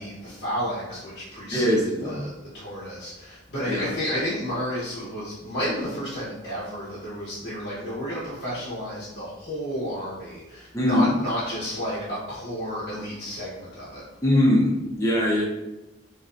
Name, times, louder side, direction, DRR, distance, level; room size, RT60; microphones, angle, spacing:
voice 1, 0.0-2.3 2.5-14.0, equal, 55° left, -8 dB, 0.7 m, -31 dB
voice 2, 1.5-2.2 3.7-3.9 10.7-11.2 14.2-15.4, left 1 dB, 15° left, -2 dB, 0.4 m, -22 dB
2.4 x 2.2 x 2.4 m, 0.97 s
head